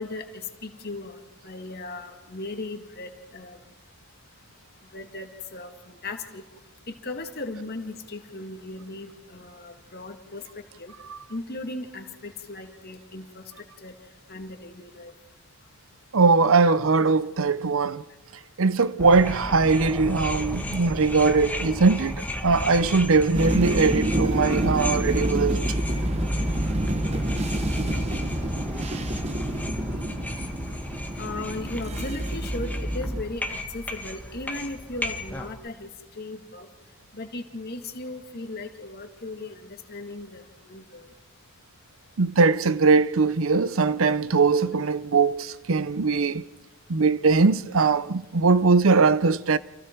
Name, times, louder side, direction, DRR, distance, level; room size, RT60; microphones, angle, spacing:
voice 1, 0.0-3.6 4.9-6.4 6.9-10.4 10.8-10.9 11.3-13.4 13.8-13.9 14.3-15.1 31.2-35.9 36.2-36.7 37.1-41.1, left 2 dB, 45° left, 2.0 m, -37 dB
voice 2, 16.1-18.0 18.6-25.6 42.2-46.4 46.9-49.6, right 4 dB, 60° right, 0.6 m, -21 dB
sound 1, 19.0-35.5, left 1 dB, 5° left, 1.5 m, -34 dB
sound 2, 23.3-33.2, right 1 dB, 30° right, 1.2 m, -28 dB
29.5 x 27.5 x 4.6 m
head